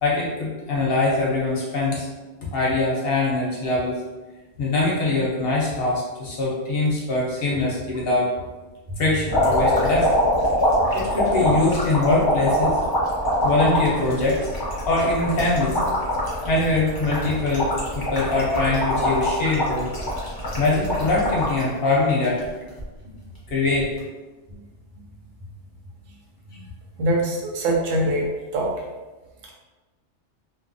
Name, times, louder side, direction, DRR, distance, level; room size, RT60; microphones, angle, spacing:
voice 1, 0.0-2.1 2.5-4.0 4.6-8.3 9.0-10.2 10.9-12.8 13.4-14.5 14.8-15.8 16.4-17.7 17.9-19.9 20.6-22.5 23.5-23.9, left 2 dB, 60° left, -5 dB, 0.8 m, -22 dB
sound 1, 9.3-21.6 22.1-22.8 23.8-24.0, left 1 dB, 25° left, 0.5 m, -24 dB
voice 2, 27.0-28.8 29.4-29.5, right 1 dB, 80° right, -1 dB, 1.0 m, -24 dB
2.6 x 2.3 x 2.5 m, 1.2 s
omnidirectional pair, 1.3 m